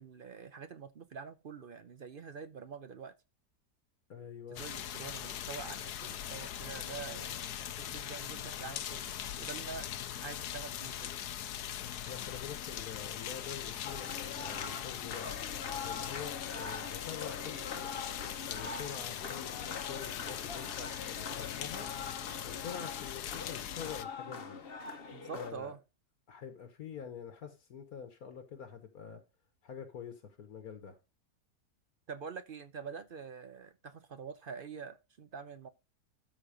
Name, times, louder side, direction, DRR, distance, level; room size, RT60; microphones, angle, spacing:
voice 1, 0.0-3.1 4.5-7.5 7.8-9.1 9.4-9.9 10.2-11.1 25.1-25.8 32.1-35.7, right 6 dB, 50° right, 0.6 m, -46 dB
voice 2, 4.1-4.6 12.1-15.3 15.8-17.9 18.5-21.9 22.4-24.6 25.3-25.7 26.3-29.2 29.6-31.0, left 7 dB, 70° left, 1.6 m, -46 dB
sound 1, 4.6-24.0, left 10 dB, 90° left, 1.3 m, -41 dB
sound 2, 13.8-25.5, left 5 dB, 40° left, 1.1 m, -43 dB
13.0 x 4.3 x 5.0 m
omnidirectional pair, 1.6 m